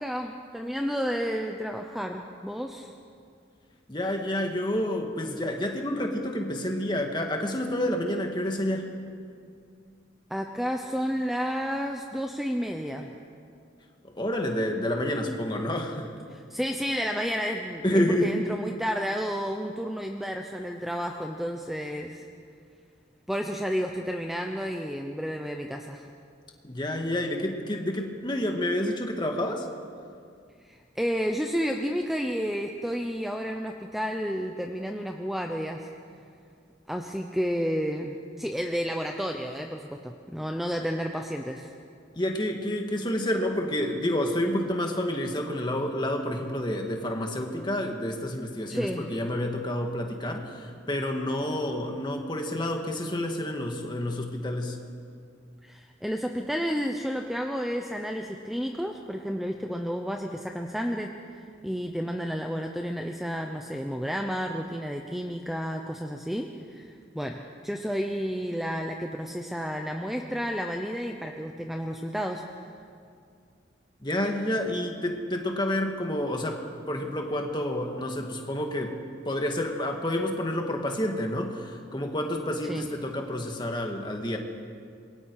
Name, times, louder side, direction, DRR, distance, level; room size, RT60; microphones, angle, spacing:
voice 1, 0.0-2.9 10.3-13.1 16.3-22.2 23.3-26.1 30.6-35.9 36.9-41.7 48.7-49.1 55.6-72.5 82.6-82.9, equal, ahead, 3 dB, 0.8 m, -31 dB
voice 2, 3.9-8.9 14.0-16.1 17.8-18.3 26.6-29.7 42.2-54.8 74.0-79.0 79.2-84.4, left 1 dB, 25° left, 2 dB, 2.0 m, -29 dB
27.0 x 22.5 x 4.8 m, 2.3 s
head